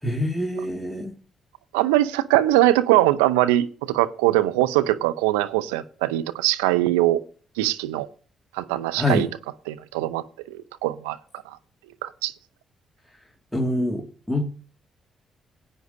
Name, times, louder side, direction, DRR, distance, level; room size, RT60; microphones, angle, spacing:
voice 1, 0.0-1.1 8.9-9.3 13.5-14.4, left 1 dB, 5° left, 2.1 m, -25 dB
voice 2, 1.7-7.2 7.6-8.1 8.5-9.3 9.7-11.2 11.5-11.6 12.0-12.3, right 15 dB, 85° right, 0.5 m, -22 dB
16.5 x 9.2 x 2.7 m
hypercardioid pair, 45°, 0 cm